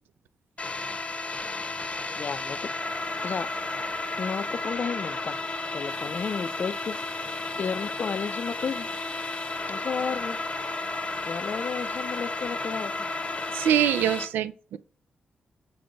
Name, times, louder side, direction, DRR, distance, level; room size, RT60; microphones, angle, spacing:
sound 1, 0.6-14.3, left 2 dB, 35° left, 1.0 m, -33 dB
voice 1, 2.2-3.5 4.2-5.4 5.7-8.9 9.7-10.4 11.2-13.1, left 6 dB, 55° left, 0.4 m, -33 dB
voice 2, 13.5-14.8, right 10 dB, 85° right, 0.3 m, -24 dB
5.1 x 4.7 x 3.9 m
supercardioid pair, 45°, 3 cm